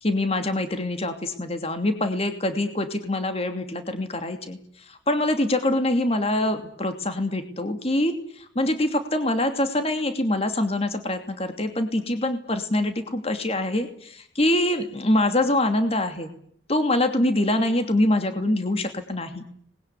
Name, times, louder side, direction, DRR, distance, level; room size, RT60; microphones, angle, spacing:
voice 1, 0.0-4.6 4.9-16.3 16.7-19.4, left 1 dB, 30° left, 7 dB, 2.8 m, -24 dB
26.0 x 21.0 x 9.8 m, 0.66 s
head